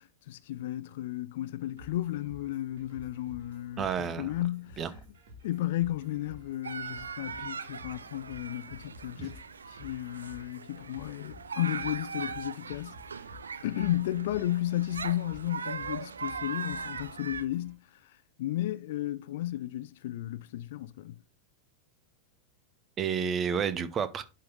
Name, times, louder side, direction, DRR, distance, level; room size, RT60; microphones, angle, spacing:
voice 1, 0.0-4.8 5.4-9.3 9.7-12.9 13.6-21.2, left 14 dB, 55° left, 0.6 m, -34 dB
sound 1, 1.8-17.7, left 1 dB, 55° right, 2.8 m, -53 dB
voice 2, 3.8-4.3 4.8-4.9 9.2-9.3 23.0-24.2, right 7 dB, 25° right, 0.8 m, -30 dB
sound 2, 6.6-17.4, right 5 dB, 75° right, 0.5 m, -40 dB
11.0 x 4.1 x 4.2 m
figure-of-eight pair, 90°, 0 cm